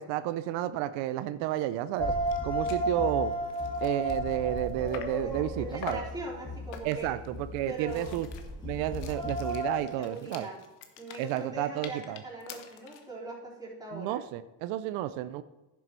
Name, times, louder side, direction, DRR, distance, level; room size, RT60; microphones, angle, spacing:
voice 1, 0.0-2.1 2.4-3.3 3.8-6.0 6.8-8.3 8.6-10.5 11.2-12.2 13.9-15.4, right 13 dB, 90° right, 13 dB, 0.6 m, -31 dB
sound 1, 2.0-2.1 2.3-2.4 2.6-2.9 3.3-5.3 5.8-6.2 6.7-7.2 7.7-13.1, left 8 dB, 85° left, 1.3 m, -46 dB
sound 2, 2.0-9.8, equal, 10° left, 2.6 m, -33 dB
voice 2, 5.2-7.2 7.7-8.2 9.8-10.6 11.0-14.2, right 2 dB, 10° right, -5 dB, 4.0 m, -41 dB
11.0 x 7.1 x 4.5 m, 1.1 s
cardioid pair, 105°, 44 cm